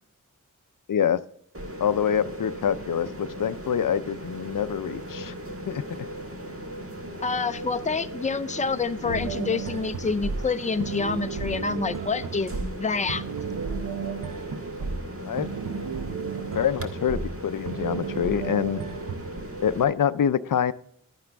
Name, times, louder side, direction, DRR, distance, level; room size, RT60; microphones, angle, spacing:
voice 1, 0.9-1.2 1.8-5.3 5.7-5.8 15.3-15.5 16.5-18.8 19.6-20.7, left 8 dB, 80° left, 15 dB, 0.5 m, -25 dB
sound 1, 1.5-19.8, right 1 dB, 45° right, 1.5 m, -38 dB
voice 2, 7.2-13.2, left 4 dB, 25° left, 11 dB, 0.5 m, -27 dB
sound 2, 9.0-19.4, right 5 dB, 75° right, 0.9 m, -33 dB
11.5 x 9.9 x 3.4 m, 0.67 s
wide cardioid pair, 60°, 32 cm